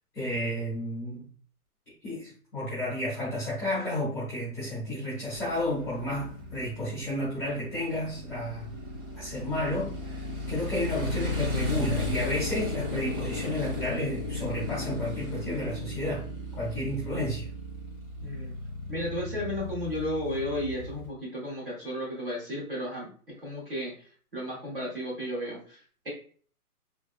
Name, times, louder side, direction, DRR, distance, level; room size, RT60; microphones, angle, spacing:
voice 1, 0.1-1.2 2.0-8.7 9.2-16.2 16.6-17.5, left 1 dB, 5° right, 0.8 m, -32 dB
Motorcycle, 5.3-21.1, left 2 dB, 60° right, 1.3 m, -35 dB
voice 2, 18.2-18.5 18.9-23.1 23.4-26.1, left 1 dB, 40° right, 0.8 m, -34 dB
3.4 x 2.0 x 2.3 m
hypercardioid pair, 180°, 45 cm